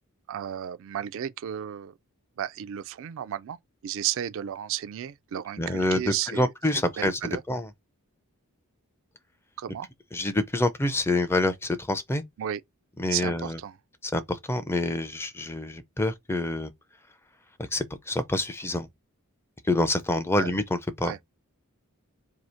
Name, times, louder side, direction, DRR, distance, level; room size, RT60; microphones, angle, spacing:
voice 1, 0.3-1.9 2.4-3.6 3.8-7.4 9.6-9.9 12.4-12.6 13.1-13.8 20.4-20.5 21.0-21.2, right 10 dB, 60° right, 0.3 m, -33 dB
voice 2, 5.6-7.2 7.5-7.7 10.1-12.2 13.0-13.6 14.1-16.7 17.7-18.9 19.7-20.6 21.0-21.1, left 1 dB, 10° left, 0.4 m, -27 dB
2.8 x 2.7 x 4.3 m
head